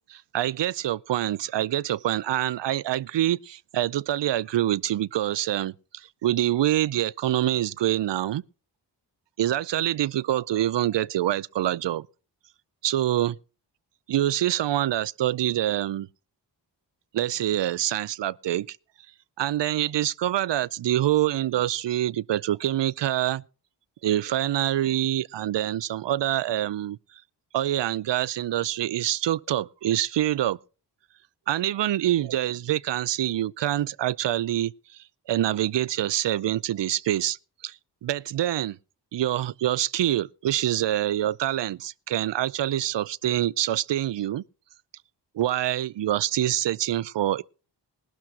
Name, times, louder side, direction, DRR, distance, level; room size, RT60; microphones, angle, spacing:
voice 1, 0.1-8.4 9.4-12.1 12.8-13.3 14.1-16.1 17.1-18.8 19.4-23.4 24.0-27.0 27.5-30.6 31.5-34.7 35.3-37.4 37.6-38.8 39.1-44.4 45.3-47.4, right 13 dB, 75° right, 0.5 m, -25 dB
20.0 x 12.0 x 2.8 m
wide cardioid pair, 115°, 43 cm